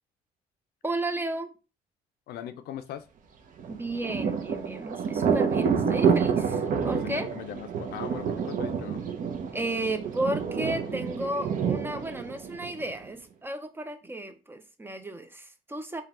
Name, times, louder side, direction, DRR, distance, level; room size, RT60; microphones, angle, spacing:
voice 1, 0.8-1.5 3.7-7.3 9.5-16.0, right 1 dB, 15° right, 0.5 m, -33 dB
voice 2, 2.3-3.1 6.9-9.0, left 10 dB, 70° left, 0.5 m, -39 dB
Thunder, 3.6-13.1, right 6 dB, 50° right, 0.8 m, -28 dB
4.5 x 2.3 x 3.6 m
cardioid pair, 110°, 17 cm